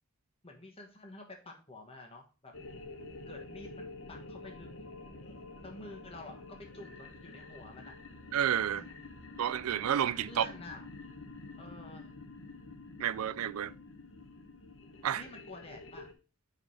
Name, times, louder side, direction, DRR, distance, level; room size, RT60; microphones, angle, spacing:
voice 1, 0.4-2.5 3.3-4.7 5.6-8.0 8.7-9.2 10.3-10.9 11.6-12.1 15.1-16.1, left 2 dB, 25° left, 1.3 m, -49 dB
sound 1, 2.5-16.1, left 3 dB, 60° left, 1.0 m, -48 dB
voice 2, 8.3-8.8 9.4-10.5 13.0-13.7 15.0-15.2, right 9 dB, 80° right, 0.4 m, -30 dB
4.9 x 4.9 x 5.6 m
head